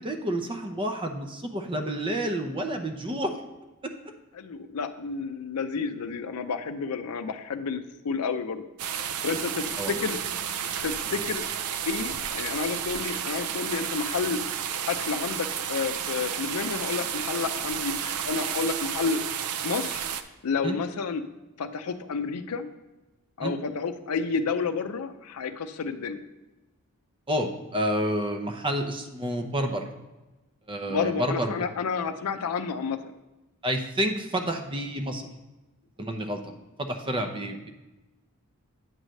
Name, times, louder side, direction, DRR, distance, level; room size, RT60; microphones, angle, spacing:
voice 1, 0.0-3.3 9.8-10.0 20.6-20.8 23.4-23.5 27.3-29.9 30.7-31.6 33.6-35.3 36.0-37.7, equal, 25° right, 5 dB, 0.6 m, -29 dB
voice 2, 4.4-8.6 9.2-10.2 10.8-11.4 11.9-14.4 14.9-19.2 19.6-20.0 20.4-21.2 21.6-22.7 23.4-26.2 30.9-33.0, left 5 dB, 80° left, 10 dB, 0.5 m, -30 dB
sound 1, 8.8-20.2, right 8 dB, 75° right, 0.5 m, -32 dB
9.0 x 3.2 x 6.3 m, 1.1 s
head